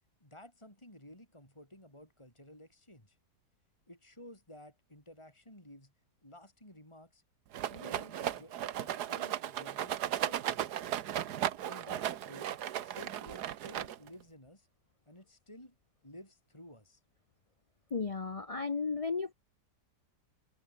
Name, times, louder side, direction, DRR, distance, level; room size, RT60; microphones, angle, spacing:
voice 1, 0.2-3.2 3.9-5.9 6.2-7.2 7.7-10.8 11.6-12.6 12.8-14.7 15.1-15.7 16.0-17.0, left 1 dB, 15° left, 6.6 m, -54 dB
Rattle, 7.5-14.2, right 11 dB, 75° right, 1.5 m, -36 dB
voice 2, 17.9-19.3, left 4 dB, 40° left, 0.4 m, -34 dB
omnidirectional pair, 1.8 m